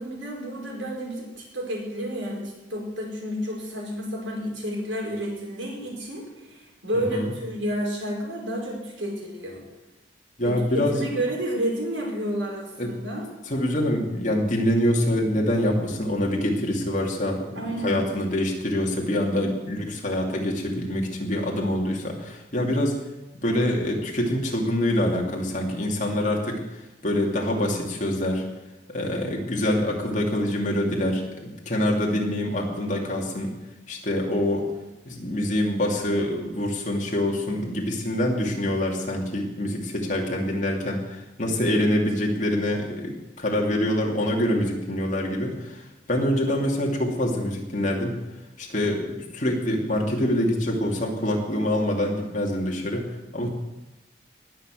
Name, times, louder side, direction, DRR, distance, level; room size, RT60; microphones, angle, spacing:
voice 1, 0.0-9.7 10.4-13.3 17.6-18.0, equal, 85° right, -1 dB, 5.1 m, -30 dB
voice 2, 6.9-7.3 10.4-11.0 12.8-12.9 13.5-23.0 23.4-28.4 28.9-33.5 33.9-34.7 35.1-48.2 48.6-53.5, left 1 dB, 40° left, 0 dB, 2.7 m, -25 dB
19.5 x 6.9 x 7.7 m, 1.0 s
head